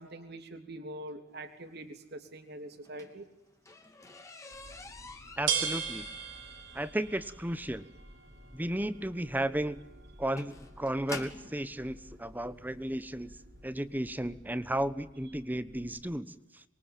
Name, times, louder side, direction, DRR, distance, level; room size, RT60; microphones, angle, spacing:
voice 1, 0.0-3.3, right 1 dB, 55° right, 7 dB, 3.2 m, -44 dB
sound 1, 2.7-11.6 12.5-12.6 13.1-13.4 13.6-13.7 14.1-14.2, left 3 dB, 15° left, 2.8 m, -48 dB
sound 2, 4.5-16.0, right 6 dB, 70° right, 6.0 m, -41 dB
voice 2, 5.4-6.1 6.7-7.8 8.5-9.8 10.2-13.3 13.6-16.6, right 1 dB, 10° right, 14 dB, 1.1 m, -34 dB
27.0 x 23.0 x 9.1 m, 0.93 s
head